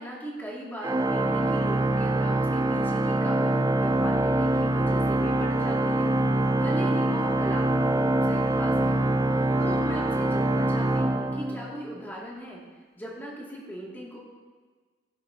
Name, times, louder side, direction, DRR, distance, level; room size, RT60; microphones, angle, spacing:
voice 1, 0.0-9.2 9.6-12.6 12.9-14.2, equal, 10° left, -5 dB, 2.3 m, -39 dB
Organ, 0.8-12.0, right 1 dB, 15° right, 0.4 m, -24 dB
17.0 x 8.5 x 2.8 m, 1.4 s
head